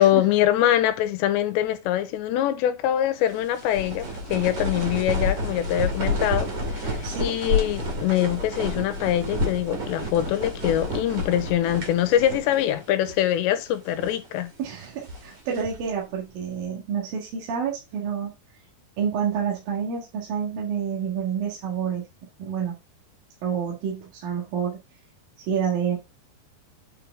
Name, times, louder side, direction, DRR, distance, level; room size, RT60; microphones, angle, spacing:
voice 1, 0.0-6.5 6.7-14.5, left 12 dB, 85° left, 3.0 m, -23 dB
sound 1, 3.3-12.8 13.1-13.2 13.8-14.3 14.8-15.9, left 1 dB, 35° right, 1.9 m, -30 dB
voice 2, 14.6-18.3 19.0-22.1 22.4-22.8 23.4-24.8 25.4-26.0, right 7 dB, 60° right, 3.1 m, -28 dB
9.0 x 4.9 x 3.4 m
omnidirectional pair, 5.2 m